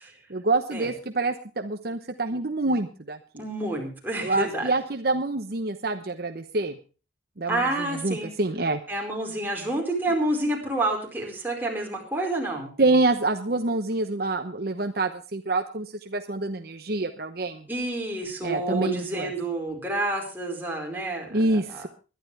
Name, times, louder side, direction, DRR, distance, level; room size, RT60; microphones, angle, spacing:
voice 1, 0.3-3.4 4.2-6.8 7.4-8.8 12.8-17.7 18.4-19.3 21.3-21.9, right 2 dB, 55° right, 8 dB, 0.9 m, -26 dB
voice 2, 3.4-4.7 7.5-8.3 8.9-12.7 17.7-21.8, right 2 dB, 10° right, -1 dB, 4.7 m, -29 dB
21.5 x 11.5 x 3.4 m, 0.34 s
head